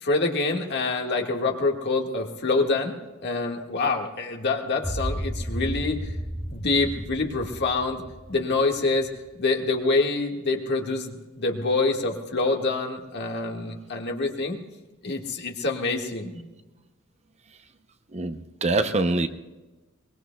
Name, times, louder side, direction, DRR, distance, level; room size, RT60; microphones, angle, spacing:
voice 1, 0.0-3.0 3.2-6.1 6.5-8.0 8.3-9.1 9.3-14.6 15.0-16.4, left 3 dB, 55° left, 2 dB, 1.7 m, -26 dB
sound 1, 4.8-9.2, equal, 10° right, 1.2 m, -33 dB
voice 2, 18.1-19.3, right 2 dB, 30° right, 9 dB, 0.6 m, -24 dB
23.0 x 21.5 x 2.3 m, 1.2 s
head